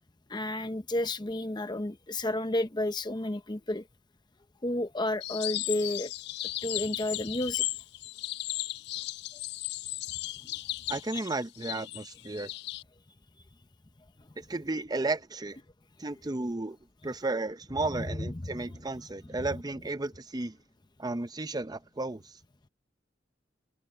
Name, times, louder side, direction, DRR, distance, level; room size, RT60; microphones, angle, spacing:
voice 1, 0.3-3.9 4.6-6.1 6.6-7.7 10.4-10.6 11.1-11.2 14.2-14.3 17.9-18.7, left 1 dB, 25° left, 0.8 m, -32 dB
sound 1, 5.2-12.8, left 17 dB, 65° left, 0.3 m, -36 dB
voice 2, 10.9-12.5 14.4-15.6 16.0-16.8 17.0-20.6 21.0-22.3, right 2 dB, 20° right, 0.6 m, -33 dB
head